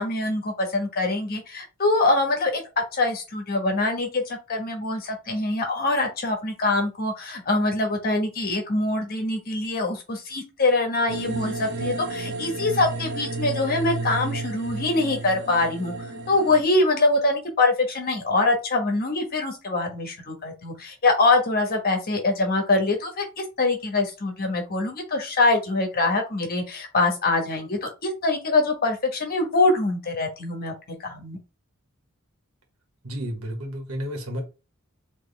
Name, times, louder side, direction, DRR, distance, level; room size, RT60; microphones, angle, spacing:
voice 1, 0.0-2.6 2.9-15.9 16.3-30.7 31.0-31.4, left 2 dB, 45° left, 1.3 m, -24 dB
sound 1, 11.1-16.6, right 3 dB, 50° right, 0.9 m, -32 dB
voice 2, 33.0-34.4, equal, 80° right, 1.4 m, -31 dB
4.2 x 3.0 x 3.4 m
head